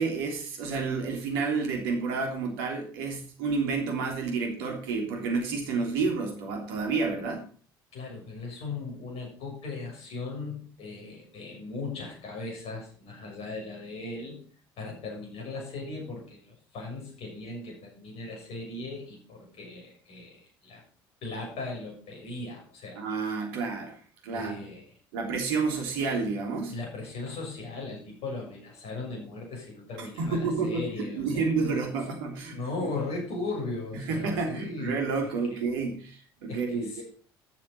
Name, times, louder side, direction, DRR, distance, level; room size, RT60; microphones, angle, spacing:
voice 1, 0.0-7.4 22.9-24.0 24.2-24.5 25.1-26.8 30.0-32.5 32.8-32.9 33.9-37.0, right 4 dB, 70° right, 2 dB, 3.2 m, -30 dB
voice 2, 7.9-14.4 14.8-20.8 21.2-23.0 24.3-24.9 26.7-31.5 32.5-35.0 35.5-35.6 36.5-37.0, left 3 dB, 55° left, -2 dB, 6.7 m, -38 dB
12.5 x 7.5 x 5.5 m, 0.43 s
hypercardioid pair, 60°, 12 cm